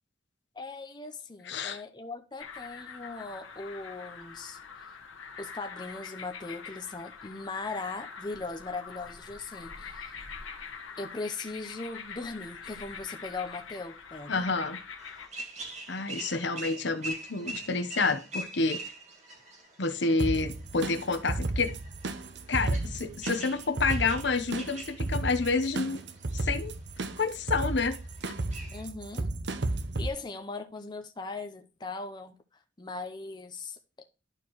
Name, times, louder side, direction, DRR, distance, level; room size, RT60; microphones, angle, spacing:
voice 1, 0.5-4.6 4.9-5.0 5.4-10.3 11.0-14.4 28.7-29.3 30.0-32.3 32.8-33.8, left 3 dB, 20° left, 0.7 m, -39 dB
voice 2, 1.5-1.8 14.3-14.8 15.9-18.8 19.8-21.7 22.5-26.0 26.4-26.7 27.2-28.0, left 3 dB, 60° left, 0.9 m, -29 dB
sound 1, 2.4-15.3, left 6 dB, 90° left, 1.3 m, -44 dB
sound 2, 15.0-28.8, right 2 dB, 35° right, 2.0 m, -44 dB
sound 3, 20.2-30.1, right 2 dB, 60° right, 0.8 m, -33 dB
11.5 x 4.4 x 3.0 m
head